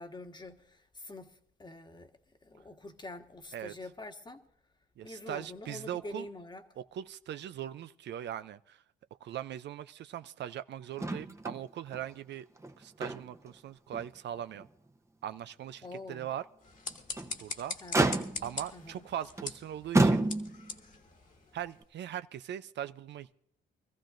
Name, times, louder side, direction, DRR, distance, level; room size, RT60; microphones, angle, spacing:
voice 1, 0.0-2.1 2.4-4.4 5.0-6.6 15.8-16.3 17.8-18.2 18.7-19.1, left 2 dB, 20° left, 1.4 m, -46 dB
voice 2, 5.0-6.3 6.8-8.8 9.2-12.5 12.8-14.7 15.2-16.4 17.4-17.8 18.4-20.3 21.5-23.3, right 11 dB, 60° right, 0.5 m, -40 dB
Motor vehicle (road), 11.0-11.6 11.9-12.0 12.6-13.5 13.9-14.1 14.6-14.7 16.9-17.4 17.9-18.6 19.4-19.5 19.9-20.7 21.8-21.9, right 2 dB, 15° right, 0.9 m, -29 dB
sound 1, 16.6-21.9, left 4 dB, 40° left, 1.6 m, -43 dB
25.0 x 14.5 x 2.6 m
cardioid pair, 90°, 20 cm